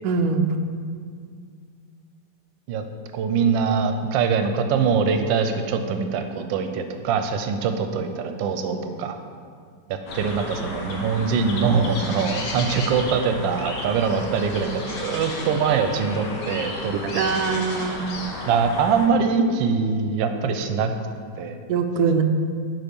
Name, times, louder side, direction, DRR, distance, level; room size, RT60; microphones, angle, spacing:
voice 1, 0.0-0.5 17.0-18.2 21.7-22.2, right 5 dB, 70° right, 6 dB, 0.9 m, -22 dB
voice 2, 3.1-9.2 9.9-17.5 18.5-20.9 21.4-21.6, right 5 dB, 85° right, 7 dB, 1.3 m, -23 dB
sound 1, 10.1-19.1, left 2 dB, 85° left, 1.7 m, -33 dB
9.1 x 4.0 x 5.2 m, 2.1 s
omnidirectional pair, 2.0 m